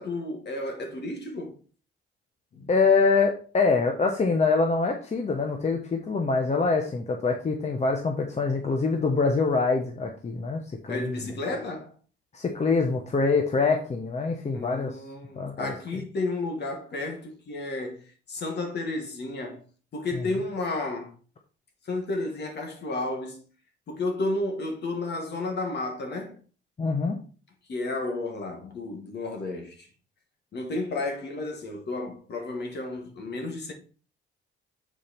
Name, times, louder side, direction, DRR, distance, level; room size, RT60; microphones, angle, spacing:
voice 1, 0.0-1.5 2.5-2.7 10.9-11.9 14.5-18.0 18.3-19.6 19.9-21.1 21.8-23.4 23.9-26.4 27.7-29.9 30.5-33.7, left 2 dB, 60° left, 2.2 m, -32 dB
voice 2, 2.7-11.1 12.3-15.0 15.4-15.7 26.8-27.2, left 4 dB, 35° left, 1.1 m, -24 dB
7.2 x 4.6 x 4.4 m
cardioid pair, 90°, 20 cm